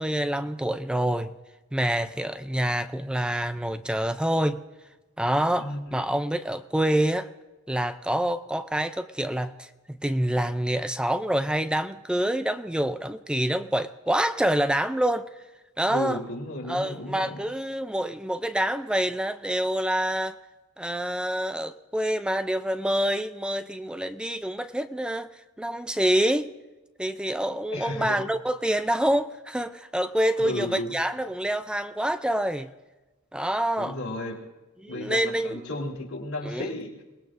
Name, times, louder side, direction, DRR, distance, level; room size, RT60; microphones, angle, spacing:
voice 1, 0.0-1.4 1.7-4.6 5.2-7.3 7.7-15.3 15.8-16.2 16.7-20.4 20.8-25.3 25.6-26.5 27.0-32.7 33.3-34.0 34.8-35.6 36.4-36.7, right 1 dB, 5° right, 0.4 m, -27 dB
voice 2, 5.6-6.0 15.9-17.4 27.7-28.2 30.4-30.9 33.8-34.4 34.9-36.9, left 1 dB, 85° left, 3.6 m, -34 dB
28.5 x 19.5 x 2.6 m
head